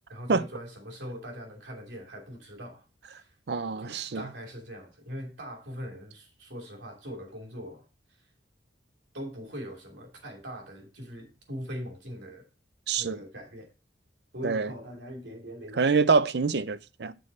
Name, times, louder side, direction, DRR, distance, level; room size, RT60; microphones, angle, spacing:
voice 1, 0.1-3.3 3.8-7.8 9.1-12.5 13.0-13.7 14.3-16.1, equal, 80° right, 2.8 m, -41 dB
voice 2, 3.5-4.2 12.9-13.2 14.4-14.7 15.8-17.1, right 4 dB, 65° right, 0.5 m, -25 dB
7.4 x 6.3 x 4.1 m
head